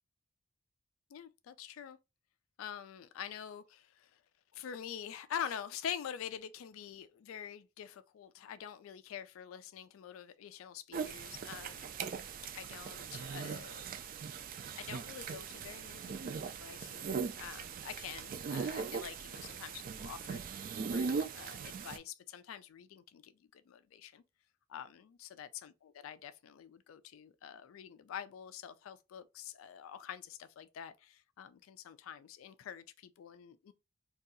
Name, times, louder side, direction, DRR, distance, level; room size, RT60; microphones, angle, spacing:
voice 1, 1.1-2.0 2.6-4.2 4.5-11.9 12.5-13.9 14.7-24.2 24.7-33.7, left 8 dB, 85° left, 0.3 m, -46 dB
sound 1, 10.9-22.0, right 5 dB, 45° right, 0.3 m, -40 dB
2.7 x 2.3 x 3.7 m
head